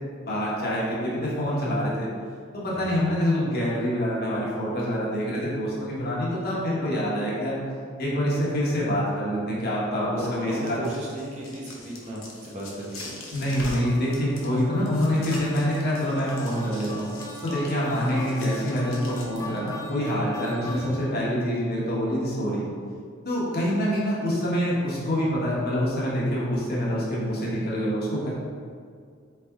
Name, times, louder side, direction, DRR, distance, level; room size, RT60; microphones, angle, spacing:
voice 1, 0.3-2.1 2.5-7.6 8.0-10.8 13.3-17.1 17.4-22.6 23.2-28.3, equal, 50° left, -6 dB, 1.1 m, -26 dB
voice 2, 2.7-3.0 10.2-13.2 20.6-20.9, right 1 dB, 35° right, -5 dB, 0.8 m, -35 dB
sound 1, 10.4-19.7, left 2 dB, 75° left, 0.8 m, -42 dB
sound 2, 13.8-21.3, left 2 dB, 15° left, 0.4 m, -40 dB
4.0 x 3.4 x 3.5 m, 2.1 s
head